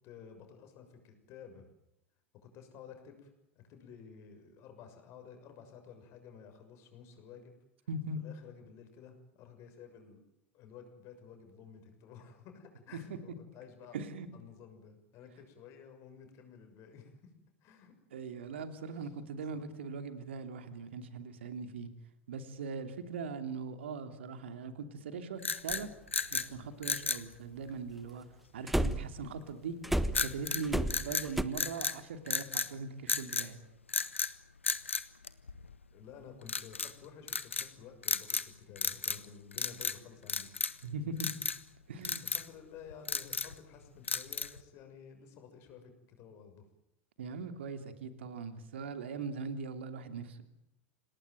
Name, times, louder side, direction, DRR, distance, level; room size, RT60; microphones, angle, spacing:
voice 1, 0.0-1.7 2.4-7.5 8.1-10.2 10.5-14.0 14.3-17.3 17.6-17.9 18.9-19.1 19.5-19.7 35.9-38.4 38.7-40.5 42.0-45.9 46.2-46.6, left 7 dB, 45° left, 6 dB, 6.5 m, -53 dB
voice 2, 7.9-8.2 13.9-14.3 18.1-21.9 22.3-25.9 26.3-28.2 28.5-29.7 30.2-33.6 40.8-41.3 41.9-42.2 47.2-50.4, right 4 dB, 70° right, 9 dB, 3.0 m, -40 dB
sound 1, 25.4-26.5 26.8-27.3 30.1-30.6 30.9-32.0 32.3-32.7 33.1-33.5 33.9-34.3 34.6-35.8 36.5-36.9 37.3-37.7 38.0-38.5 38.8-39.3 39.5-40.0 40.3-40.8 41.2-41.6 42.0-42.5 42.9-43.6 44.1-44.6, left 5 dB, 85° left, 1.1 m, -34 dB
sound 2, 25.7-25.8 28.7-29.2 29.8-31.4, equal, ahead, 1.3 m, -31 dB
28.0 x 19.0 x 9.3 m, 0.82 s
figure-of-eight pair, 85°, 7 cm